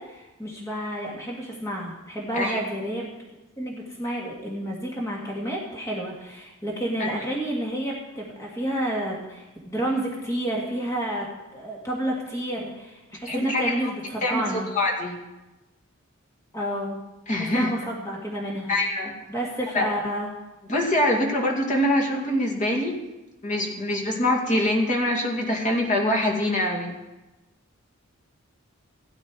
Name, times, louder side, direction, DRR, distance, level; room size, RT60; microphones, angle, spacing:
voice 1, 0.0-3.1 3.6-14.7 16.5-17.0 17.3-18.7 19.3-20.3, right 1 dB, 15° left, -2 dB, 1.8 m, -30 dB
voice 2, 13.3-13.7 14.2-14.4 14.8-15.2 17.3-17.7 18.7-19.2 19.7-19.9 20.7-23.0 23.4-26.9, left 1 dB, 35° left, 0 dB, 2.2 m, -24 dB
16.5 x 9.8 x 4.7 m, 1.0 s
head